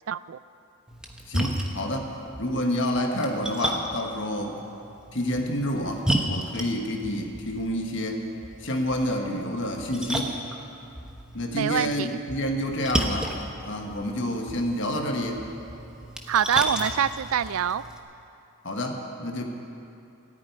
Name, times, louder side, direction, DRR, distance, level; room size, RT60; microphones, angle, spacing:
voice 1, 0.1-0.4 11.5-12.2 16.3-17.8, right 8 dB, 70° right, 16 dB, 0.4 m, -25 dB
Splash splatter, 0.9-18.0, right 1 dB, 5° right, 1.0 m, -34 dB
voice 2, 1.3-4.6 5.1-8.2 8.6-10.4 11.3-13.3 13.6-15.4 18.6-19.4, left 1 dB, 55° left, 2 dB, 1.5 m, -28 dB
14.0 x 9.2 x 9.4 m, 2.7 s
head